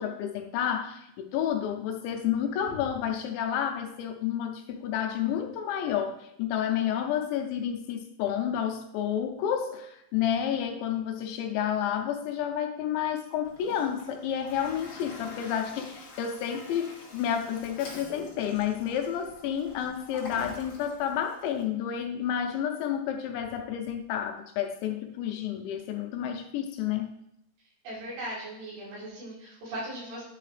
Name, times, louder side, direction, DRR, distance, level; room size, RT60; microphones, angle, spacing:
voice 1, 0.0-27.1, left 9 dB, 80° left, 4 dB, 3.0 m, -30 dB
Toilet flush, 13.4-21.6, left 3 dB, 50° left, 2.4 m, -46 dB
voice 2, 27.8-30.2, right 1 dB, 65° right, -6 dB, 4.9 m, -38 dB
11.5 x 4.8 x 3.3 m, 0.78 s
omnidirectional pair, 5.3 m